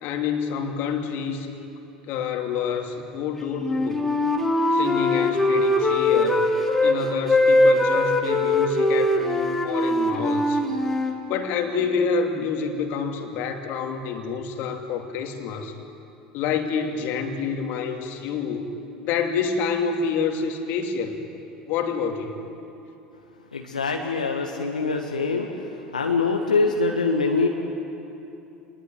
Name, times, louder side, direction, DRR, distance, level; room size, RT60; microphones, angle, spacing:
voice 1, 0.0-1.5 2.1-4.0 4.7-6.5 6.8-10.6 11.3-15.8 16.3-18.7 19.0-21.2 21.7-22.4, left 6 dB, 55° left, 4 dB, 2.8 m, -28 dB
Wind instrument woodwind instrument, 3.6-7.0 7.3-11.1, left 2 dB, 5° left, 3.4 m, -21 dB
voice 2, 23.5-25.5 25.9-27.5, left 4 dB, 85° left, 1 dB, 1.6 m, -23 dB
28.0 x 20.5 x 9.5 m, 2.8 s
figure-of-eight pair, 70°, 4 cm